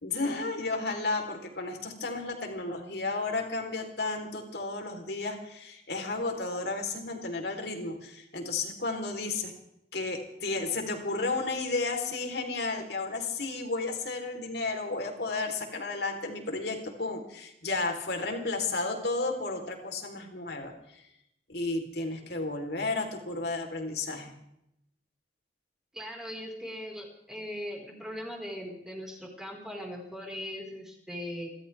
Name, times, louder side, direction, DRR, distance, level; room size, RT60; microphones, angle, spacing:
voice 1, 0.0-9.5 9.9-21.0 21.5-24.3, left 3 dB, 70° left, 3 dB, 3.9 m, -33 dB
voice 2, 25.9-31.5, equal, 5° right, -1 dB, 4.8 m, -39 dB
30.0 x 13.5 x 3.5 m, 0.78 s
head